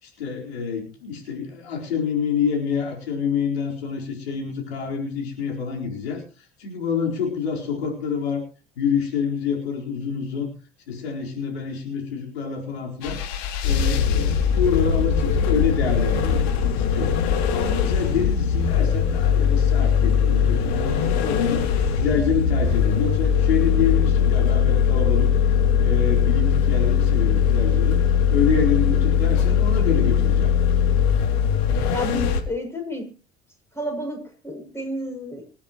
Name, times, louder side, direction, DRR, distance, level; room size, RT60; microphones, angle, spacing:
voice 1, 0.0-6.2 6.6-8.4 8.8-10.5 10.9-13.2 13.6-16.5 16.7-17.2 17.5-21.6 22.0-25.3 25.8-28.0 28.3-30.5, left 6 dB, 80° left, 0 dB, 4.5 m, -27 dB
sound 1, 13.0-32.4, left 7 dB, 65° left, 2.4 m, -20 dB
voice 2, 31.9-33.1 33.7-35.4, equal, 10° left, 3 dB, 7.5 m, -31 dB
26.5 x 10.0 x 3.1 m, 0.34 s
figure-of-eight pair, 60°, 31 cm